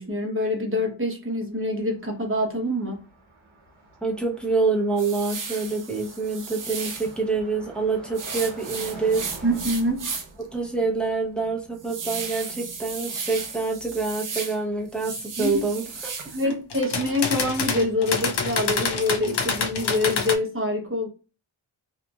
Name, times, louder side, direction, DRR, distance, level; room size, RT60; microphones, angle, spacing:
voice 1, 0.0-3.0 9.4-10.1 15.4-15.6 16.3-21.1, left 1 dB, 25° right, 1.0 m, -25 dB
Car passing by, 1.6-13.6, right 2 dB, 90° right, 1.1 m, -47 dB
voice 2, 4.0-9.2 10.5-15.8, right 4 dB, ahead, 0.8 m, -26 dB
sound 1, 5.0-7.1 8.1-10.4 10.8-10.9 11.4-14.6 14.9-16.5, right 5 dB, 45° right, 0.6 m, -35 dB
sound 2, 16.5-20.4, left 5 dB, 60° left, 0.6 m, -27 dB
2.9 x 2.5 x 2.3 m
wide cardioid pair, 80°, 48 cm